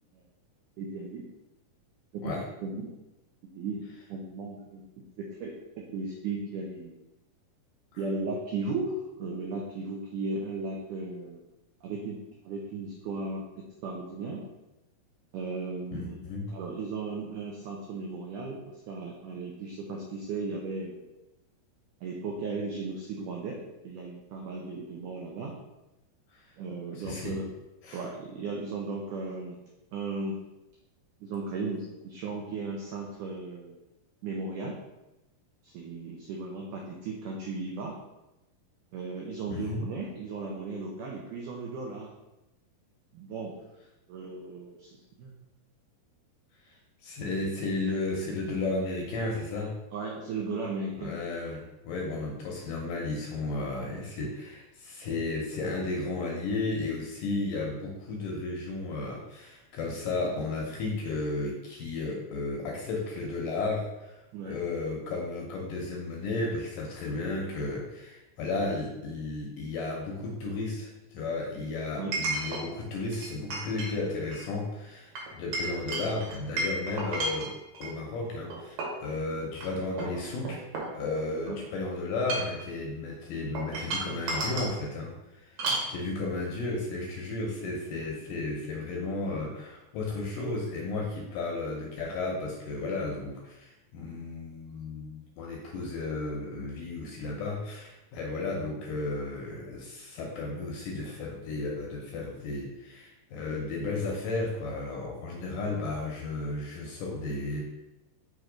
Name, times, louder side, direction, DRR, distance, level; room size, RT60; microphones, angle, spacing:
voice 1, 0.8-1.3 2.1-2.3 2.6-2.9 3.6-3.8 4.1-4.8 5.2-7.0 8.0-11.4 11.8-12.2 12.5-14.5 15.3-16.2 16.5-21.0 22.0-23.6 23.8-25.5 26.6-27.5 27.9-29.6 29.9-30.4 31.2-33.8 34.2-34.8 35.6-38.0 38.9-42.1 43.1-43.6 44.1-45.3 49.9-51.1 64.3-64.6 72.0-72.2 81.5-81.6 85.7-85.8, right 3 dB, 85° right, -1 dB, 1.8 m, -36 dB
voice 2, 15.9-16.5 26.3-26.5 26.9-27.4 27.8-28.0 39.5-39.8 46.7-46.8 47.0-49.7 51.0-64.2 64.5-77.5 77.8-80.6 80.9-85.6 85.9-107.6, left 3 dB, 75° left, -1 dB, 2.1 m, -33 dB
Chink clink, 68.7-68.8 72.1-72.6 73.1-73.9 74.2-74.5 75.2-77.9 78.5-79.0 79.5-79.7 80.0-81.4 82.1-82.6 83.5-84.7 85.6-85.9, right 2 dB, 65° right, 3.0 m, -33 dB
6.2 x 3.2 x 5.0 m, 0.97 s
omnidirectional pair, 4.6 m